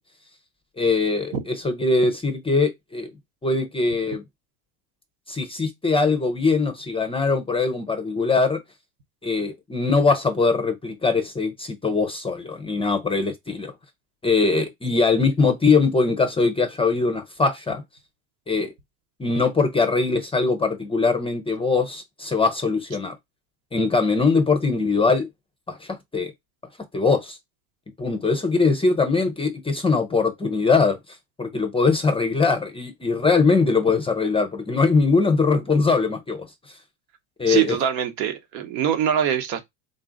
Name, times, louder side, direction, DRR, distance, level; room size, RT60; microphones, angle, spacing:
voice 1, 0.8-3.1 3.4-4.2 5.3-8.6 9.2-13.7 14.2-17.8 18.5-18.7 19.2-23.1 23.7-25.3 25.7-26.3 26.9-27.4 28.0-31.0 31.4-36.5 37.4-37.8, left 4 dB, 10° left, 0.5 m, -21 dB
voice 2, 37.5-39.6, right 9 dB, 85° right, 1.2 m, -23 dB
3.8 x 2.4 x 3.8 m
supercardioid pair, 120°, 48 cm